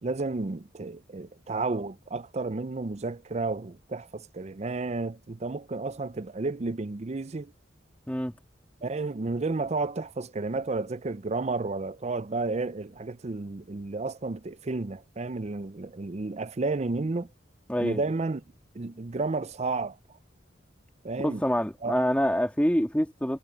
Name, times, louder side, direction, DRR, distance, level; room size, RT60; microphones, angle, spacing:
voice 1, 0.0-7.5 8.8-17.3 17.8-18.4 18.7-20.0 21.0-21.4 21.8-21.9, right 3 dB, 35° right, 0.5 m, -32 dB
voice 2, 17.7-18.0 21.2-23.4, equal, 5° left, 1.9 m, -26 dB
head